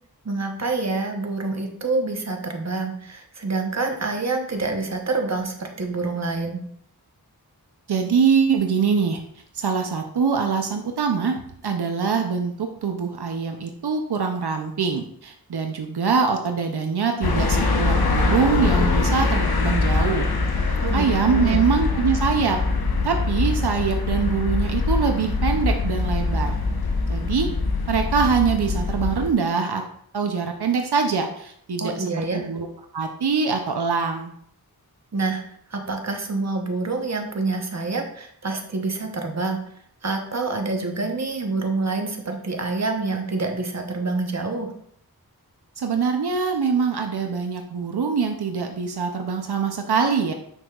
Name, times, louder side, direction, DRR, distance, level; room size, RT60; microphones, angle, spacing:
voice 1, 0.2-6.6 20.8-21.6 31.8-32.5 35.1-35.4 35.7-39.6 40.0-44.7, right 3 dB, 45° right, 3 dB, 0.9 m, -27 dB
voice 2, 7.9-9.2 9.5-20.3 20.9-22.6 23.0-26.5 27.1-27.5 27.9-29.8 30.1-32.7 32.9-34.3 45.8-50.3, right 5 dB, 85° right, 4 dB, 0.7 m, -23 dB
sound 1, 17.2-29.3, left 3 dB, 70° left, 0.8 m, -23 dB
6.5 x 6.2 x 2.4 m, 0.67 s
wide cardioid pair, 55°, 38 cm